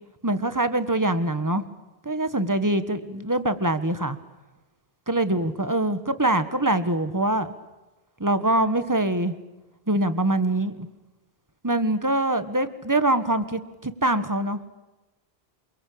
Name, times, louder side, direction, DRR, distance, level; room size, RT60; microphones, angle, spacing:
voice 1, 0.2-1.6 2.0-4.2 5.1-7.5 8.2-9.4 9.9-10.9 11.6-14.6, right 1 dB, 20° right, 11 dB, 1.6 m, -24 dB
28.0 x 23.5 x 8.7 m, 1.1 s
omnidirectional pair, 1.0 m